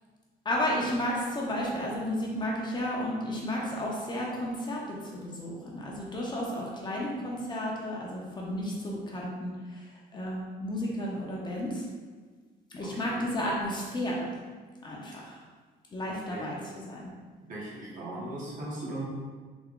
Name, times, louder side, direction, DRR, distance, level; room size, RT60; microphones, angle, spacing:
voice 1, 0.4-9.8 10.1-11.8 12.7-14.3 14.8-15.4 15.9-16.6 16.9-17.0, left 1 dB, 25° left, -3 dB, 0.7 m, -32 dB
voice 2, 12.8-13.2 16.0-16.9 17.4-19.1, right 1 dB, 55° right, -5 dB, 1.0 m, -39 dB
3.4 x 2.2 x 3.7 m, 1.5 s
cardioid pair, 110°, 17 cm